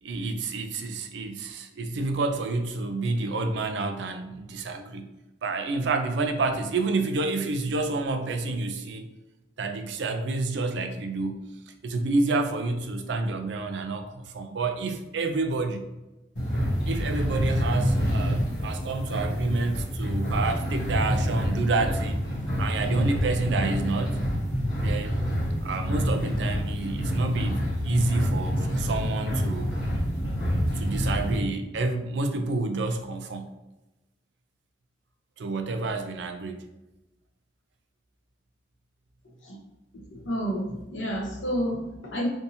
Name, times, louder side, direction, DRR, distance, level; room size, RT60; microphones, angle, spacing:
voice 1, 0.0-5.1 5.4-9.0 9.6-11.4 11.8-15.9 16.9-22.2 22.6-24.2 24.8-25.2 25.6-29.7 30.8-33.5 35.4-36.6, right 3 dB, 70° right, 6 dB, 0.4 m, -29 dB
sound 1, 16.4-31.4, equal, 60° left, 1.3 m, -27 dB
voice 2, 40.1-42.3, equal, 90° left, -2 dB, 1.0 m, -30 dB
3.4 x 2.6 x 2.8 m, 1.0 s
head